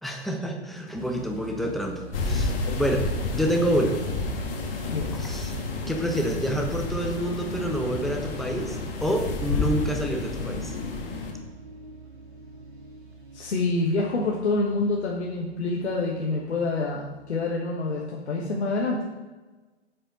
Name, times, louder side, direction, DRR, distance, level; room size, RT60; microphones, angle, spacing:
voice 1, 0.0-3.0 3.3-4.0 5.1-5.5 5.9-10.7, equal, ahead, 2 dB, 0.9 m, -28 dB
sound 1, 0.9-17.6, right 3 dB, 70° right, 2.3 m, -43 dB
sound 2, 2.1-11.3, left 3 dB, 55° left, 1.8 m, -30 dB
voice 2, 13.3-19.0, left 3 dB, 75° left, -2 dB, 1.4 m, -27 dB
8.7 x 5.7 x 5.2 m, 1.2 s
figure-of-eight pair, 105°, 33 cm